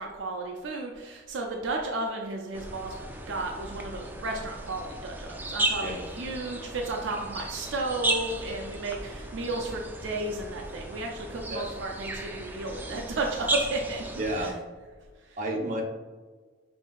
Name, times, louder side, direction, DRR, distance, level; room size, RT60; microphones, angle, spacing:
voice 1, 0.0-2.9 3.3-14.1 14.4-14.5 15.2-15.4, right 2 dB, 80° right, 1 dB, 0.4 m, -33 dB
sound 1, 2.5-14.5, right 1 dB, 10° right, 0.3 m, -35 dB
voice 2, 14.2-14.5 15.4-15.8, right 1 dB, 45° right, -1 dB, 0.8 m, -30 dB
5.5 x 2.6 x 2.3 m, 1.4 s
head